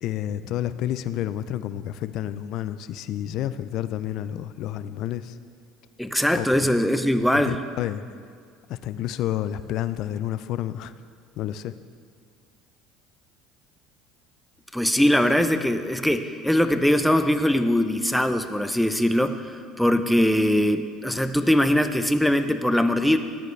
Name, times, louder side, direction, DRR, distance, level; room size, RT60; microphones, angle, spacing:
voice 1, 0.0-5.4 6.3-6.7 7.3-8.0 8.7-10.9 11.4-11.7, left 12 dB, 65° left, 13 dB, 0.4 m, -30 dB
voice 2, 6.0-7.6 14.7-23.2, left 1 dB, ahead, 8 dB, 0.7 m, -21 dB
14.0 x 9.2 x 3.3 m, 2.2 s
supercardioid pair, 90°, 0 cm